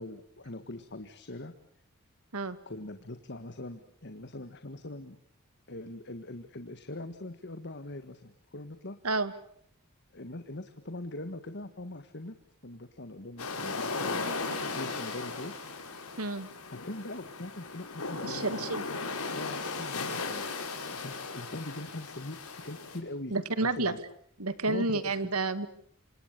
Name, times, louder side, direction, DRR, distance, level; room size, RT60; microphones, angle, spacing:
voice 1, 0.0-1.5 2.6-5.2 5.7-9.0 10.1-12.3 12.6-15.5 16.7-18.7 19.3-20.5 20.9-24.0 24.6-25.1, left 2 dB, 50° left, 9 dB, 1.7 m, -42 dB
sound 1, 13.4-23.0, left 4 dB, 90° left, 6.0 m, -37 dB
voice 2, 16.2-16.5 18.2-18.8 23.3-23.9 24.4-25.7, right 3 dB, 80° right, 13 dB, 2.1 m, -30 dB
27.5 x 27.0 x 6.8 m, 0.63 s
head